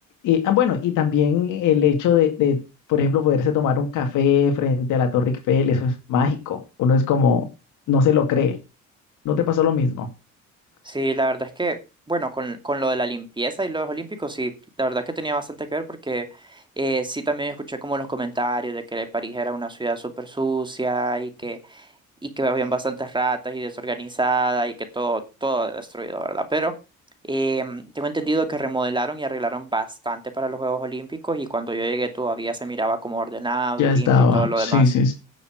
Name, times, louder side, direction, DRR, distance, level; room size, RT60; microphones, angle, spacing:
voice 1, 0.2-2.6 2.9-7.5 7.9-8.6 9.2-10.1 33.8-35.1, left 6 dB, 90° left, 2.3 m, -20 dB
voice 2, 10.8-11.8 12.1-14.5 14.8-21.9 22.2-26.7 27.2-34.8, right 2 dB, 15° right, 2.5 m, -26 dB
10.5 x 7.0 x 6.4 m
cardioid pair, 90°, 30 cm